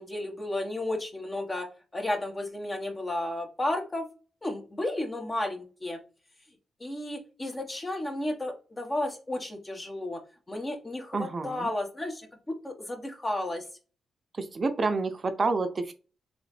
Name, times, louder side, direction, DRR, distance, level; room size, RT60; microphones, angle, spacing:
voice 1, 0.0-1.7 1.9-4.1 4.4-6.0 6.8-10.2 10.5-13.6, left 1 dB, 30° left, 3 dB, 1.4 m, -33 dB
voice 2, 11.1-11.7 14.4-15.9, right 3 dB, 45° right, 8 dB, 0.6 m, -28 dB
3.8 x 3.1 x 3.3 m, 0.35 s
supercardioid pair, 45°, 0 cm